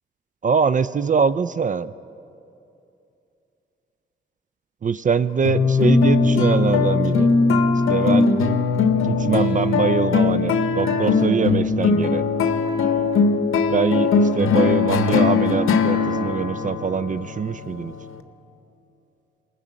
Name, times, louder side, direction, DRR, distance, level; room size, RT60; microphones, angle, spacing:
voice 1, 0.4-1.9 4.8-7.3 7.9-8.3 9.0-12.2 13.7-17.9, right 6 dB, 40° right, 16 dB, 0.4 m, -23 dB
sound 1, 5.4-18.2, left 4 dB, 85° left, 0.7 m, -20 dB
18.5 x 6.3 x 8.0 m, 2.7 s
supercardioid pair, 45°, 21 cm